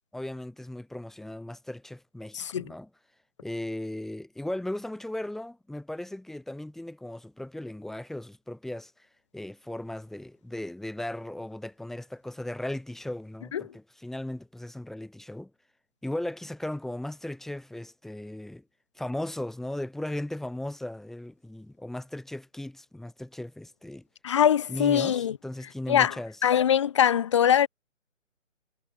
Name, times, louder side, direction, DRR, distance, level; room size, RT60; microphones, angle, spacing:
voice 1, 0.1-2.9 3.4-9.1 9.3-15.5 16.0-18.6 19.0-24.1 24.7-26.4, left 1 dB, ahead, 4.1 m, -37 dB
voice 2, 2.3-2.7 13.5-13.6 24.2-25.4 25.9-26.1 26.4-27.7, left 9 dB, 25° left, 1.4 m, -22 dB
figure-of-eight pair, 160°, 39 cm